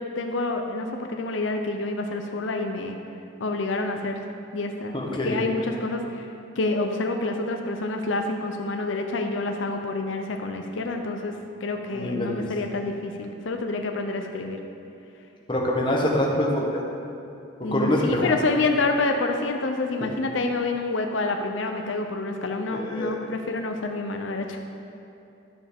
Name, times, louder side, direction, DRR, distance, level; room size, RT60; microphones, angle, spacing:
voice 1, 0.0-3.0 3.4-4.2 4.5-6.2 6.6-11.3 11.6-14.6 17.6-24.7, left 2 dB, 80° left, 4 dB, 0.6 m, -28 dB
voice 2, 4.9-5.3 11.9-12.5 15.5-16.8 17.7-18.3 22.7-23.2, left 1 dB, 25° left, -2 dB, 1.0 m, -25 dB
11.5 x 6.9 x 3.6 m, 2.8 s
head